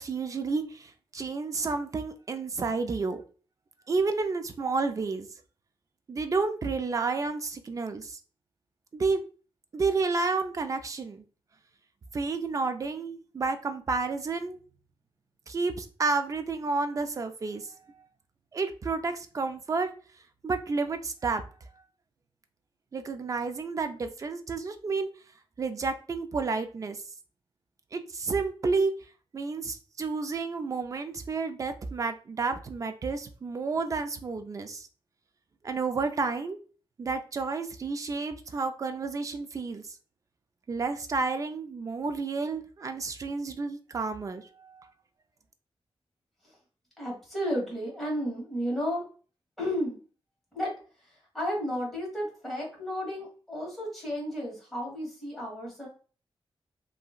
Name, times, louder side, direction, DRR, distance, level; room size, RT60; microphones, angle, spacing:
voice 1, 0.0-3.2 3.9-5.3 6.1-8.2 8.9-9.2 9.7-11.2 12.1-14.6 15.5-17.7 18.5-19.9 20.4-21.4 22.9-25.1 25.6-27.0 27.9-28.9 29.3-34.9 35.6-36.6 37.0-40.0 40.7-44.9, right 4 dB, 35° right, 7 dB, 0.4 m, -30 dB
voice 2, 47.0-49.0 49.6-50.0 50.5-50.7 51.0-55.9, equal, ahead, -4 dB, 1.4 m, -33 dB
2.8 x 2.6 x 2.3 m, 0.38 s
wide cardioid pair, 145°, 10 cm